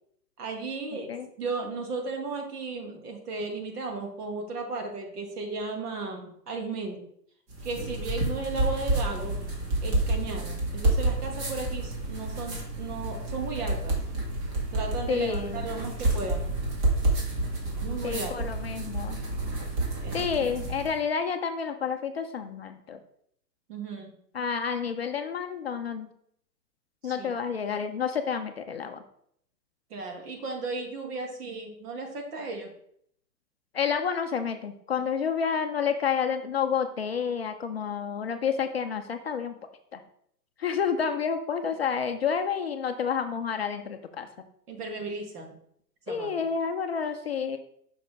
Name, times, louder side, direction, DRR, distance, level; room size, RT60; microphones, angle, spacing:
voice 1, 0.4-7.1 7.6-9.4 9.8-14.0 14.7-16.5 17.8-18.4 20.0-20.2 23.7-24.2 27.0-27.3 29.9-32.7 44.7-45.6 46.1-46.3, right 3 dB, 70° right, 3 dB, 2.0 m, -35 dB
sound 1, 7.5-21.0, right 2 dB, 45° right, 2.3 m, -29 dB
voice 2, 15.1-15.7 18.0-19.2 20.1-23.0 24.3-26.1 27.0-29.0 33.7-39.6 39.9-40.0 40.6-44.3 46.1-47.6, left 6 dB, 40° left, 7 dB, 0.4 m, -29 dB
5.7 x 4.0 x 5.1 m, 0.69 s
hypercardioid pair, 150°, 49 cm